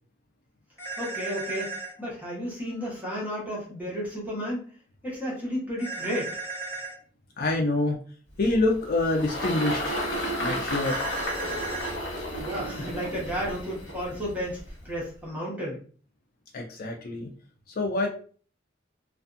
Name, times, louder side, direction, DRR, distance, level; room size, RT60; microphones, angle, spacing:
sound 1, 0.8-1.9 5.8-6.9 10.8-12.0, right 4 dB, 15° left, 1.2 m, -35 dB
voice 1, 1.0-1.7 2.0-4.6 5.0-6.4 12.4-15.8, equal, 10° right, -5 dB, 0.9 m, -32 dB
voice 2, 7.4-8.0 8.4-10.0 10.4-11.0 16.5-17.3 17.8-18.1, left 2 dB, 55° left, 0 dB, 0.4 m, -26 dB
Engine, 8.4-15.0, equal, 90° left, 1.0 m, -33 dB
2.5 x 2.2 x 2.4 m, 0.43 s
head